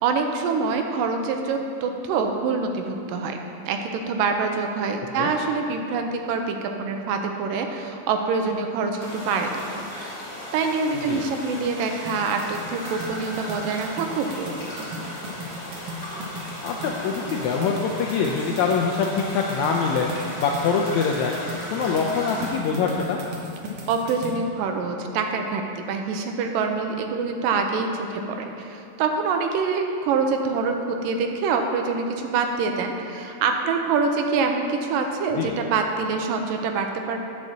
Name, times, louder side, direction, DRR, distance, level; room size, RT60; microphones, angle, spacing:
voice 1, 0.0-3.4 3.7-10.2 10.5-15.0 23.9-25.6 25.9-37.2, right 4 dB, 90° right, 4 dB, 2.3 m, -25 dB
sound 1, 9.0-22.5, equal, 20° left, 1.9 m, -37 dB
sound 2, 12.1-24.3, equal, 60° right, 1.8 m, -38 dB
voice 2, 16.6-23.2 35.4-35.5, left 5 dB, 85° left, 0 dB, 1.6 m, -24 dB
9.2 x 5.3 x 7.2 m, 2.6 s
omnidirectional pair, 3.9 m